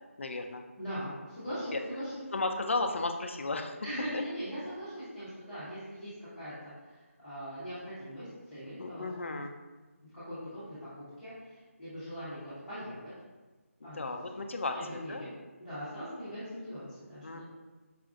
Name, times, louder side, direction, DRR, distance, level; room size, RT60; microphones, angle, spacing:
voice 1, 0.2-0.6 1.7-1.8 2.3-3.8 4.1-4.2 8.8-9.5 13.8-15.3 17.2-17.4, left 3 dB, 55° left, 4 dB, 0.4 m, -34 dB
voice 2, 0.8-2.1 3.8-9.0 10.1-13.1 13.8-14.0 14.3-14.4 14.7-15.3 15.6-17.4, equal, ahead, -23 dB, 0.8 m, -41 dB
4.9 x 2.3 x 2.4 m, 1.2 s
figure-of-eight pair, 175°, 8 cm